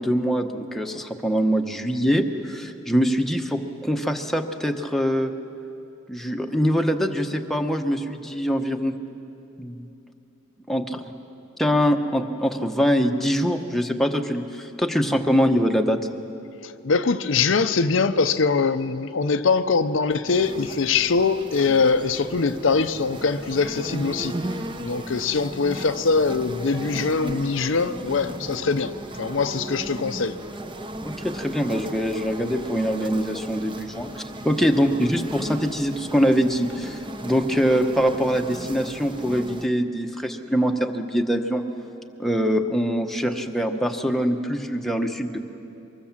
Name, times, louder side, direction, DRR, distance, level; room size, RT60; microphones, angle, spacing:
voice 1, 0.0-5.3 6.1-9.0 9.6-9.9 10.7-11.0 11.6-16.0 31.0-34.1 34.4-41.6 42.2-45.4, equal, ahead, 3 dB, 0.9 m, -23 dB
voice 2, 16.6-24.3 24.8-30.4, left 4 dB, 65° left, 9 dB, 0.6 m, -22 dB
sound 1, 20.3-39.7, right 1 dB, 25° right, 0.8 m, -36 dB
24.5 x 20.5 x 7.4 m, 2.8 s
head